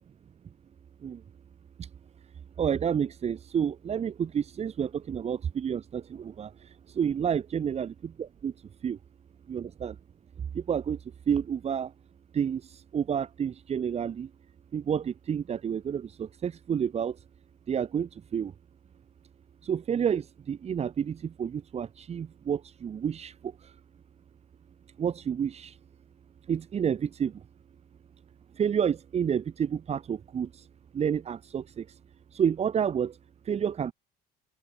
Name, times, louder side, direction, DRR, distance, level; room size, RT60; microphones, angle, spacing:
voice 1, 2.6-6.5 7.0-8.5 8.8-9.0 9.5-9.9 10.5-11.0 11.3-11.9 12.3-12.6 12.9-14.3 14.7-17.1 17.7-18.5 19.6-23.3 25.0-25.7 26.5-27.3 28.6-30.5 30.9-31.8 32.3-33.1 33.5-33.9, right 8 dB, 35° right, 7.8 m, -29 dB
cardioid pair, 135°, 18 cm